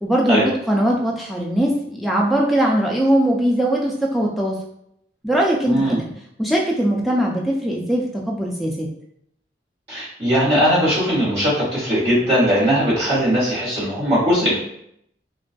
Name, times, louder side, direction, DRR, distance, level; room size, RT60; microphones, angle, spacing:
voice 1, 0.0-4.6 5.2-6.1 6.4-8.9, right 1 dB, ahead, -3 dB, 0.3 m, -20 dB
voice 2, 5.7-6.1 9.9-14.5, equal, 35° right, -9 dB, 1.2 m, -19 dB
2.4 x 2.2 x 2.4 m, 0.73 s
head